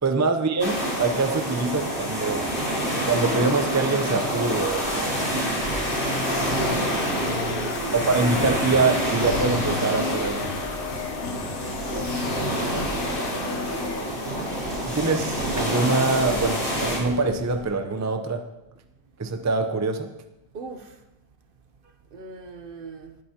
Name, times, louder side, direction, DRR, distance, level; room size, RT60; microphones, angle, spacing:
voice 1, 0.0-2.4 2.8-5.2 7.9-10.5 14.8-18.4 19.2-20.1, right 3 dB, 20° right, 0.5 m, -24 dB
sound 1, 0.6-17.0, equal, 80° left, 4.0 m, -27 dB
sound 2, 4.6-17.6, equal, 45° left, 4.8 m, -38 dB
sound 3, 5.8-14.7, left 9 dB, 65° left, 0.7 m, -34 dB
voice 2, 6.6-8.1 11.9-14.2 20.5-21.0 22.1-23.2, right 2 dB, 55° right, 1.0 m, -38 dB
19.5 x 7.9 x 2.9 m
omnidirectional pair, 1.1 m